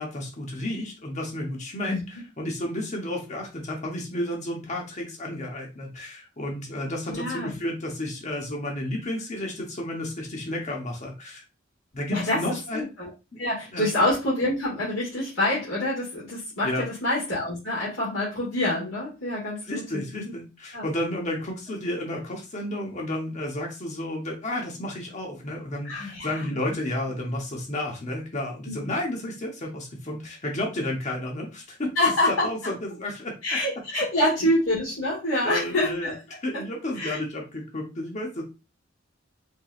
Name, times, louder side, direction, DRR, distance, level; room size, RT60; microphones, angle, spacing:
voice 1, 0.0-11.4 11.9-12.8 13.3-13.4 13.7-13.9 16.6-16.9 19.7-31.9 32.4-33.3 35.4-36.1 36.4-38.4, left 1 dB, 40° left, 0 dB, 0.9 m, -32 dB
voice 2, 7.1-7.5 12.1-13.1 13.4-20.3 20.7-20.9 25.8-26.5 28.6-28.8 32.0-32.7 33.4-36.2 36.5-36.6 36.9-37.2, left 1 dB, 85° left, -8 dB, 1.9 m, -26 dB
4.5 x 2.9 x 2.4 m, 0.28 s
head